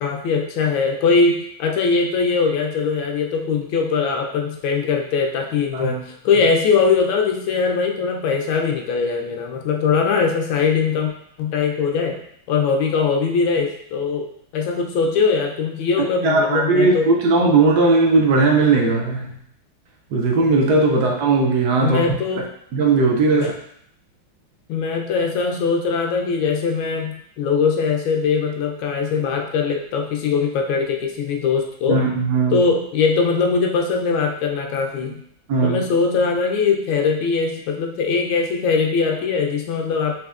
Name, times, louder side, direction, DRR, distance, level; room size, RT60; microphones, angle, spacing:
voice 1, 0.0-11.1 11.4-12.2 12.5-14.3 14.5-17.1 20.9-21.0 21.8-22.4 23.3-23.5 24.7-32.0 32.5-35.1 35.6-40.1, left 5 dB, 85° left, 2 dB, 1.4 m, -21 dB
voice 2, 16.2-19.4 20.1-22.0 22.4-22.5 22.7-23.5 31.9-32.6 35.0-35.1 35.5-35.8, right 3 dB, 70° right, 1 dB, 0.9 m, -18 dB
4.3 x 3.3 x 2.4 m, 0.70 s
omnidirectional pair, 2.1 m